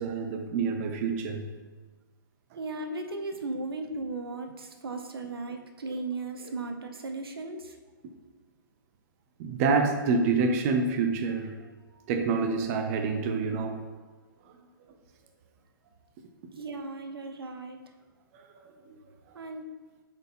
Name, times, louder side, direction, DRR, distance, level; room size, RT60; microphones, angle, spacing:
voice 1, 0.0-1.5 5.9-6.0 9.4-11.5 12.1-13.9 18.3-18.7, right 4 dB, 40° right, 5 dB, 0.7 m, -27 dB
voice 2, 2.6-7.8 16.6-17.8 19.3-19.6, right 3 dB, 85° right, 6 dB, 0.8 m, -36 dB
7.7 x 4.4 x 3.6 m, 1.3 s
hypercardioid pair, 135°, 12 cm